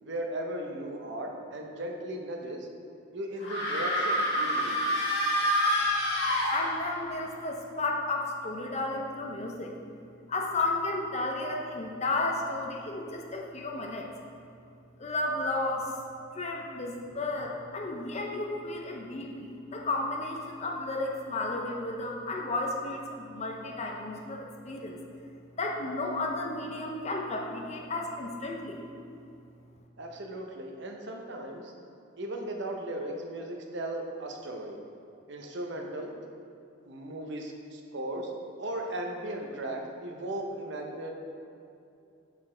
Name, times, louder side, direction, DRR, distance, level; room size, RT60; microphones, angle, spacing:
voice 1, 0.0-2.7 3.1-4.8 30.0-31.7 32.2-34.8 35.3-36.1 36.8-38.3 38.6-41.1, right 1 dB, 55° right, 2 dB, 0.6 m, -37 dB
sound 1, 3.4-7.1, equal, 60° left, 1.4 m, -27 dB
voice 2, 6.5-9.7 10.3-14.1 15.0-15.9 16.3-25.0 25.6-28.8, left 2 dB, 30° left, 1 dB, 0.5 m, -33 dB
6.2 x 4.0 x 3.7 m, 2.5 s
head